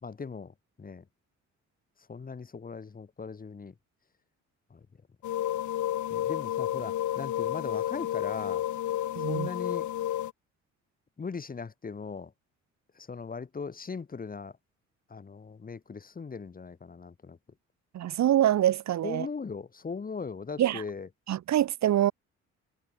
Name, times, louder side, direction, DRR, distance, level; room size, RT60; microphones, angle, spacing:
voice 1, 0.0-1.0 2.1-3.7 4.7-4.9 6.1-8.6 9.2-9.9 11.2-12.3 12.9-14.5 15.1-17.4 19.0-21.1, left 5 dB, 30° left, 1.6 m, -39 dB
sound 1, 5.2-10.3, left 12 dB, 75° left, 2.6 m, -31 dB
voice 2, 9.2-9.5 17.9-19.3 20.6-20.8 21.3-22.1, right 12 dB, 65° right, 1.2 m, -25 dB
cardioid pair, 90°, 30 cm